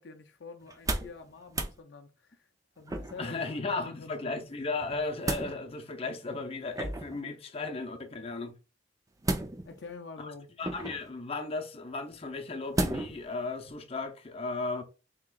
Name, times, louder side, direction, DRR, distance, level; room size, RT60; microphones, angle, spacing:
voice 1, 0.0-2.5 2.8-4.3 9.7-10.5, left 4 dB, 65° left, 0.5 m, -47 dB
sound 1, 0.7-1.2 1.5-1.8 2.9-3.3 4.8-5.5 6.7-7.2 9.2-9.9 10.6-11.1 12.7-13.2 13.7-13.8, right 2 dB, 20° right, 0.5 m, -33 dB
voice 2, 3.2-8.5 10.2-10.3 10.6-14.8, left 3 dB, 30° left, 0.7 m, -35 dB
5.9 x 3.0 x 2.4 m
head